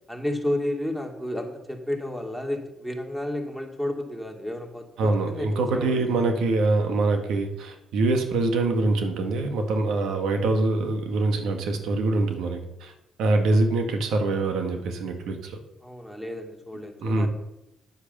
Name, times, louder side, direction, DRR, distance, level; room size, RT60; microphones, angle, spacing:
voice 1, 0.1-6.0 15.8-17.3, left 1 dB, ahead, 3 dB, 2.4 m, -31 dB
voice 2, 5.0-12.9 13.2-15.6 17.0-17.3, right 2 dB, 85° right, 5 dB, 1.7 m, -24 dB
9.9 x 8.4 x 6.7 m, 0.87 s
cardioid pair, 90°, 0 cm